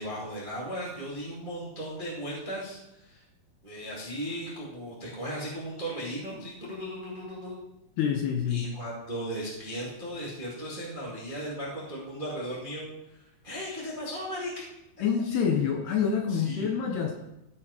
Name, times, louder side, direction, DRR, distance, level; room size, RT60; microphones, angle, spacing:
voice 1, 0.0-3.2 3.6-7.6 8.5-13.2 13.4-14.5 16.3-16.7, equal, 55° right, -5 dB, 0.5 m, -36 dB
voice 2, 8.0-8.7 15.0-17.1, left 7 dB, 75° left, 4 dB, 2.5 m, -27 dB
15.5 x 5.4 x 4.9 m, 0.89 s
omnidirectional pair, 5.5 m